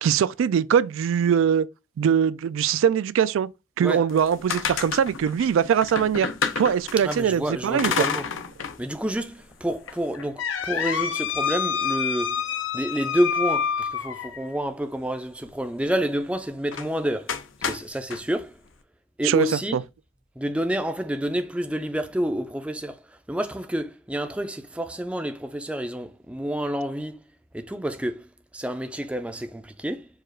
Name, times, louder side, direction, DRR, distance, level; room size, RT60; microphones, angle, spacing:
voice 1, 0.0-1.7 2.0-3.5 3.8-6.3 6.6-7.9 19.2-19.5 19.7-19.8, right 8 dB, 90° right, 0.3 m, -22 dB
sound 1, 4.1-7.2 7.8-8.8 9.2-9.3 9.9-14.5 16.7-16.9 17.3-18.2, left 6 dB, 85° left, 0.6 m, -28 dB
voice 2, 7.0-8.3 8.8-12.4 12.7-18.6 19.2-19.8 20.4-23.0 23.3-27.2 27.5-30.1, equal, 5° right, 0.3 m, -29 dB
4.8 x 2.4 x 4.4 m
head